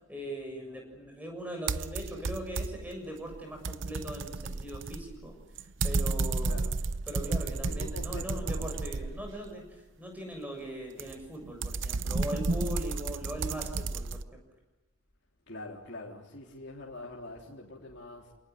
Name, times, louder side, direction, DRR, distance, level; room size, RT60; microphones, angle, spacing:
voice 1, 0.1-5.3 5.8-6.6 7.1-9.6 10.0-14.4, right 1 dB, 10° right, 2 dB, 7.0 m, -40 dB
sound 1, 1.7-3.0 3.3-9.5 11.0-14.2, right 3 dB, 60° right, 0.8 m, -32 dB
voice 2, 6.4-6.8 7.7-8.7 15.5-18.3, left 2 dB, 55° left, -2 dB, 3.6 m, -44 dB
28.5 x 19.5 x 9.5 m, 1.1 s
head